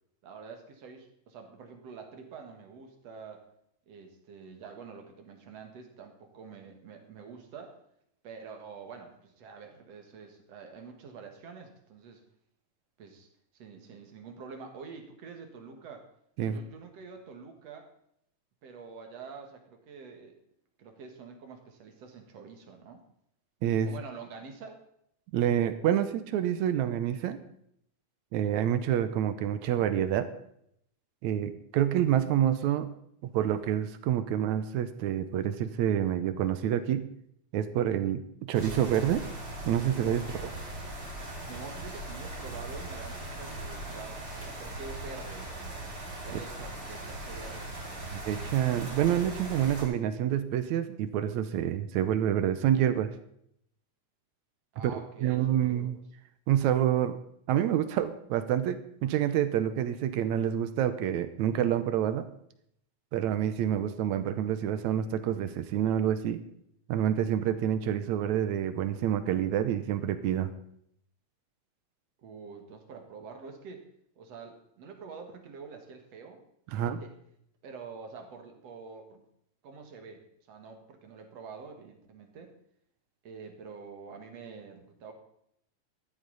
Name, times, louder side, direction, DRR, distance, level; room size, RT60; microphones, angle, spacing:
voice 1, 0.2-3.4 3.9-7.8 8.2-12.2 13.0-13.3 13.5-16.1 16.4-17.9 18.6-20.4 20.8-23.0 23.8-24.8 40.2-40.6 41.5-45.8 46.2-48.2 54.7-55.9 72.2-73.9 74.2-76.4 76.8-77.1 77.6-79.2 79.6-82.5 83.2-85.1, right 5 dB, 60° right, 5 dB, 2.7 m, -46 dB
voice 2, 23.6-23.9 25.3-27.4 28.3-30.3 31.2-32.9 33.2-37.1 37.5-39.2 39.7-40.4 46.3-46.4 48.1-53.1 55.2-56.0 56.5-57.2 57.5-62.3 63.1-66.4 66.9-70.5 76.7-77.0, right 10 dB, 75° right, 12 dB, 2.1 m, -27 dB
sound 1, 38.5-49.8, right 1 dB, 30° right, 4.8 m, -39 dB
13.5 x 12.5 x 4.0 m, 0.71 s
omnidirectional pair, 3.5 m